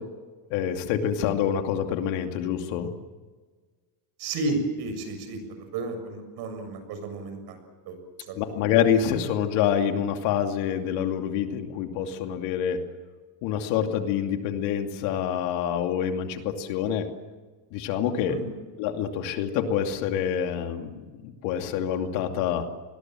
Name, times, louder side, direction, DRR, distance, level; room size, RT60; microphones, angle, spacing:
voice 1, 0.5-2.9 8.4-12.8 13.4-17.1 17.7-18.4 18.8-22.7, left 9 dB, 70° left, 5 dB, 2.7 m, -26 dB
voice 2, 4.2-5.4 5.7-7.6 7.9-8.0 8.3-8.4 18.3-18.5, right 2 dB, 55° right, 7 dB, 7.0 m, -32 dB
28.0 x 21.0 x 7.6 m, 1.4 s
cardioid pair, 150°, 47 cm